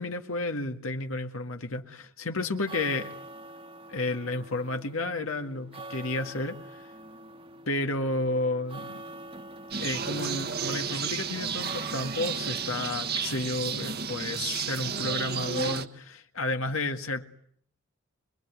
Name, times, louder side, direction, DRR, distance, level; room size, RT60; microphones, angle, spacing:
voice 1, 0.0-3.1 3.9-6.9 7.7-9.0 9.8-17.3, left 2 dB, 80° left, 1.9 m, -32 dB
sound 1, 2.4-16.0, right 2 dB, 25° right, 1.5 m, -46 dB
sound 2, 9.7-15.9, right 6 dB, 50° right, 1.4 m, -32 dB
26.5 x 21.5 x 9.7 m
head